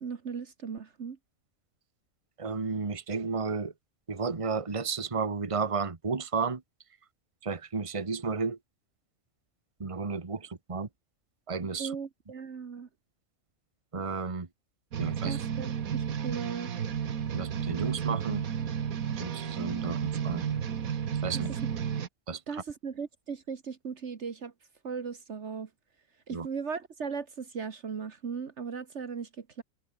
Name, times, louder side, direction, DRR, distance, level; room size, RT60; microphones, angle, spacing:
voice 1, 0.0-1.2 11.8-12.9 15.3-16.7 21.3-21.4 22.5-24.5 24.8-25.7 26.3-29.6, right 6 dB, 55° right, 1.6 m, -37 dB
voice 2, 2.4-3.7 4.1-6.6 7.4-8.6 9.8-10.9 11.5-11.9 13.9-14.5 15.0-15.4 17.3-18.4 19.2-20.4 21.2-21.5 22.3-22.6 26.3-26.5, right 4 dB, 25° right, 1.4 m, -32 dB
sound 1, 14.9-22.1, right 8 dB, 85° right, 1.7 m, -32 dB
omnidirectional pair, 1.4 m